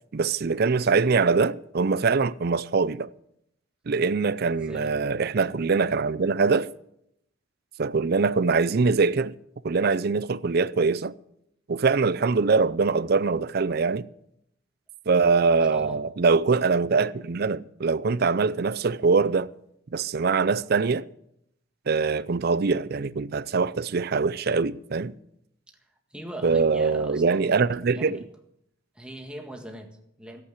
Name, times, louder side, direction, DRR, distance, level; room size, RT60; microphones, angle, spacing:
voice 1, 0.1-3.1 3.9-6.7 7.8-9.3 9.6-11.1 11.7-14.1 15.1-19.5 19.9-21.1 21.9-25.2 26.4-28.3, right 4 dB, 50° right, 0.5 m, -23 dB
voice 2, 4.5-4.9 15.7-16.0 26.1-27.6 27.9-28.2 29.0-30.4, right 1 dB, 5° right, 1.8 m, -40 dB
14.5 x 8.4 x 8.1 m
head